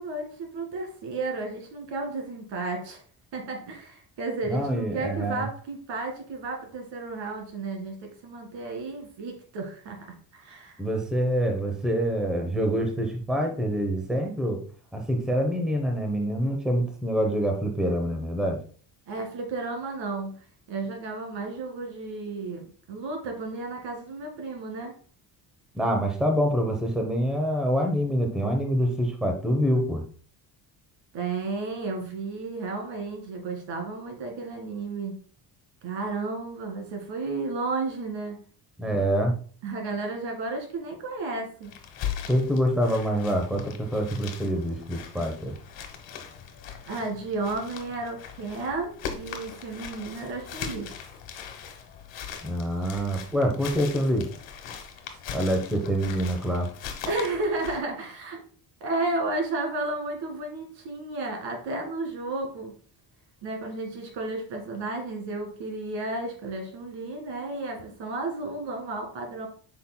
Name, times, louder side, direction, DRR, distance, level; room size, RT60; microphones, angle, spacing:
voice 1, 0.0-3.0 3.3-10.8 19.1-20.3 20.7-24.9 31.1-35.2 35.8-38.4 39.6-41.7 46.8-50.9 55.1-55.2 57.1-58.4 58.8-62.7 63.4-69.5, right 3 dB, 85° right, 3 dB, 2.1 m, -33 dB
voice 2, 4.4-5.4 10.8-14.6 14.9-18.6 25.7-30.0 38.8-39.3 42.3-45.5 52.4-54.3 55.3-56.7, equal, ahead, 3 dB, 0.7 m, -26 dB
sound 1, 41.6-57.8, left 8 dB, 85° left, 1.3 m, -40 dB
8.2 x 5.7 x 2.2 m, 0.43 s
cardioid pair, 165°, 43 cm